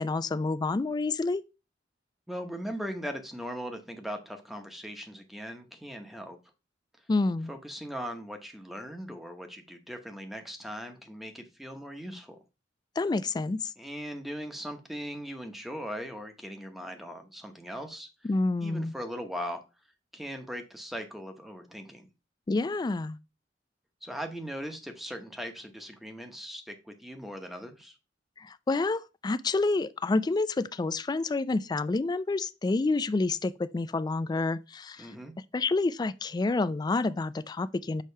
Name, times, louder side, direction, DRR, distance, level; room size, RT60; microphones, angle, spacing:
voice 1, 0.0-1.4 7.1-7.5 13.0-13.7 18.2-18.9 22.5-23.2 28.4-35.1 35.5-38.0, left 3 dB, 25° left, 0.3 m, -28 dB
voice 2, 2.3-6.4 7.5-12.4 13.8-18.1 18.6-19.6 20.1-22.1 24.0-27.9 35.0-35.3, equal, ahead, 0.9 m, -39 dB
6.5 x 3.0 x 5.5 m
head